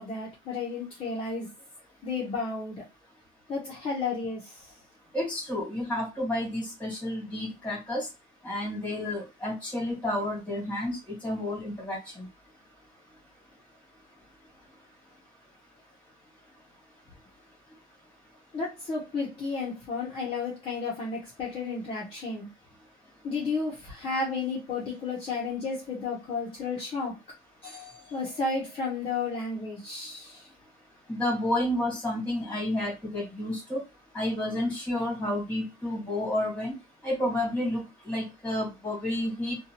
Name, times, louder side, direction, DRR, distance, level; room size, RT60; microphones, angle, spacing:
voice 1, 0.0-1.5 2.0-2.8 3.5-4.7 18.5-22.5 23.2-27.2 27.6-30.5, left 4 dB, 30° left, -4 dB, 0.7 m, -32 dB
voice 2, 5.1-8.1 8.4-12.3 31.1-33.8 34.1-36.8 37.0-39.6, left 1 dB, 5° left, -3 dB, 1.5 m, -30 dB
2.7 x 2.3 x 2.8 m, 0.24 s
cardioid pair, 180°, 18 cm